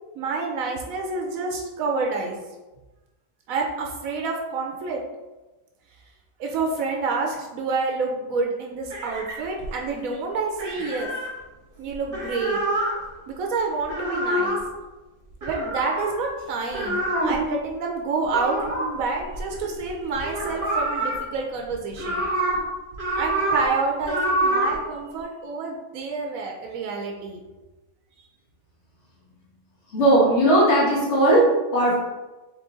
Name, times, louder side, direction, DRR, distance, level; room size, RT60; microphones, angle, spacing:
voice 1, 0.2-2.4 3.5-5.0 6.4-11.1 11.8-12.6 13.3-14.6 15.4-22.2 23.1-27.4 28.2-28.3, right 4 dB, 85° right, 1 dB, 1.0 m, -28 dB
sound 1, 8.9-9.9 10.6-11.3 11.9-12.9 13.8-14.6 15.4-16.2 16.7-17.5 18.3-19.9 20.2-21.2 21.7-22.6 22.9-23.7 24.0-24.8, right 1 dB, 45° right, 1.2 m, -26 dB
voice 2, 29.9-32.0, right 1 dB, 55° left, -7 dB, 1.6 m, -18 dB
3.8 x 3.5 x 3.6 m, 1.1 s
omnidirectional pair, 1.4 m